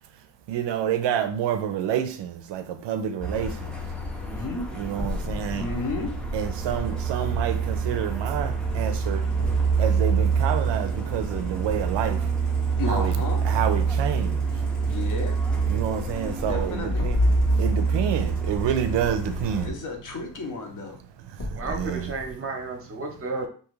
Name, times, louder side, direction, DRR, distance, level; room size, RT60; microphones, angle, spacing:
voice 1, 0.5-3.5 4.7-5.7 6.3-9.2 9.8-12.2 12.9-13.2 13.4-14.4 15.7-17.2 17.6-19.7 21.7-22.1, right 9 dB, 65° right, 0.5 m, -28 dB
Truck, 3.2-19.7, right 4 dB, ahead, 0.5 m, -26 dB
voice 2, 4.2-4.7 5.5-6.1 12.8-13.4 14.8-15.3 16.4-17.0 19.6-21.0, left 3 dB, 40° left, 0.8 m, -32 dB
sound 1, 4.9-12.7 13.0-13.1 16.9-22.3, left 2 dB, 85° left, 1.2 m, -39 dB
voice 3, 21.5-23.5, right 3 dB, 30° right, 0.8 m, -32 dB
2.7 x 2.4 x 3.0 m
cardioid pair, 130°, 46 cm